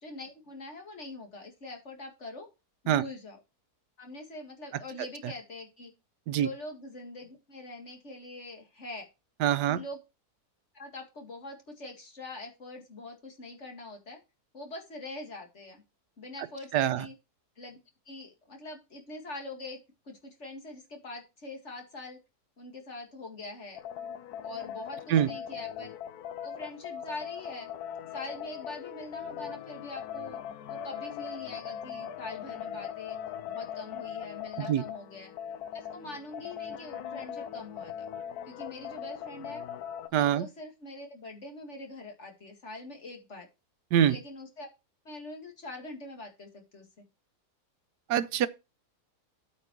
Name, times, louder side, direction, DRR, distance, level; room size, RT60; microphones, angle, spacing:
voice 1, 0.0-2.5 2.8-3.4 4.0-5.9 6.3-9.1 9.6-10.0 10.7-14.2 14.5-15.8 16.2-17.1 17.6-17.8 18.1-19.8 20.1-22.2 22.6-23.8 24.4-26.0 26.4-27.7 28.1-30.4 30.7-33.2 33.4-35.3 35.7-38.1 38.5-39.6 40.1-43.5 44.1-44.7 45.0-46.9, left 2 dB, 45° left, 2.2 m, -43 dB
voice 2, 9.4-9.8 16.7-17.0 25.1-25.3 34.6-34.8 40.1-40.5 43.9-44.2 48.1-48.5, right 10 dB, 90° right, 1.3 m, -24 dB
sound 1, 23.8-40.1, left 9 dB, 70° left, 1.2 m, -40 dB
8.6 x 5.4 x 6.0 m
omnidirectional pair, 1.7 m